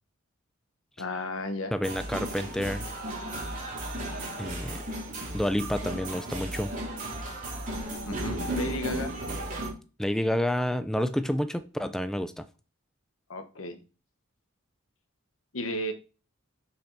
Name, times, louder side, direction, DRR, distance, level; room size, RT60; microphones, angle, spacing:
voice 1, 1.0-1.7 8.1-9.1 13.3-13.8 15.5-15.9, left 1 dB, 75° left, 8 dB, 1.2 m, -33 dB
voice 2, 1.7-2.8 4.4-4.8 5.3-6.7 10.0-12.5, equal, 5° left, 10 dB, 0.4 m, -29 dB
sound 1, 1.8-9.7, right 1 dB, 40° right, 2.7 m, -34 dB
6.7 x 5.8 x 4.0 m, 0.33 s
head